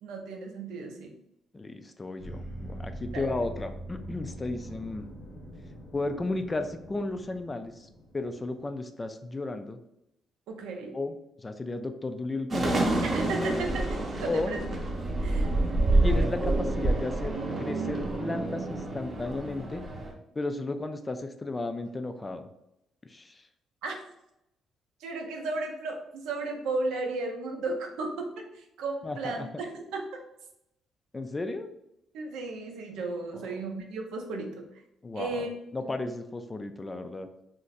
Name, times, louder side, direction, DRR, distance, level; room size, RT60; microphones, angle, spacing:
voice 1, 0.0-1.2 3.1-3.3 10.5-10.9 13.0-14.7 15.2-15.5 23.8-23.9 25.0-30.1 32.1-34.6 35.1-35.5, right 3 dB, 90° right, 3 dB, 0.5 m, -34 dB
voice 2, 1.5-5.1 5.9-7.7 8.1-9.8 10.9-13.1 14.3-14.6 16.0-17.3 17.6-19.8 20.4-22.5 23.1-23.4 29.0-29.5 31.1-31.7 33.3-33.5 35.0-35.5 35.7-37.3, left 2 dB, 25° left, 8 dB, 0.3 m, -34 dB
sound 1, 2.2-8.7, right 1 dB, 75° left, 0.8 m, -43 dB
sound 2, 12.5-20.1, right 2 dB, 40° right, 0.7 m, -28 dB
2.5 x 2.2 x 3.9 m, 0.83 s
cardioid pair, 90°, 0 cm